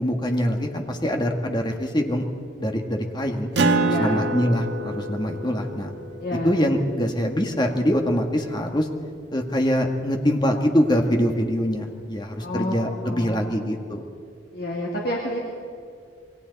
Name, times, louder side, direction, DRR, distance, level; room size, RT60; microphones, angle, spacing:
voice 1, 0.0-2.2 2.6-3.5 4.0-5.9 6.4-8.9 9.3-14.0, equal, 25° left, 3 dB, 1.8 m, -24 dB
Acoustic guitar, 3.5-8.5, right 2 dB, 60° right, 1.5 m, -28 dB
voice 2, 6.2-6.5 12.4-13.5 14.5-15.4, left 1 dB, 55° left, -3 dB, 2.7 m, -29 dB
28.0 x 22.5 x 4.1 m, 2.3 s
head